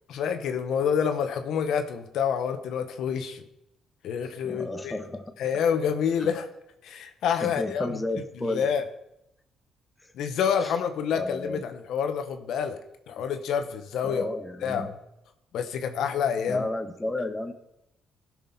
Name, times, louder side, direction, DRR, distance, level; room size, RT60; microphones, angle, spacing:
voice 1, 0.1-3.4 4.0-4.9 5.4-6.5 6.8-8.0 8.4-8.8 10.1-12.8 13.1-14.2 14.6-15.0 15.5-16.7, left 7 dB, 80° left, 8 dB, 1.0 m, -28 dB
voice 2, 4.4-5.2 7.4-8.7 10.6-10.7 11.1-11.6 14.0-14.9 16.5-17.5, left 2 dB, 15° left, 7 dB, 1.0 m, -32 dB
15.5 x 6.1 x 4.2 m, 0.84 s
cardioid pair, 90°, 0 cm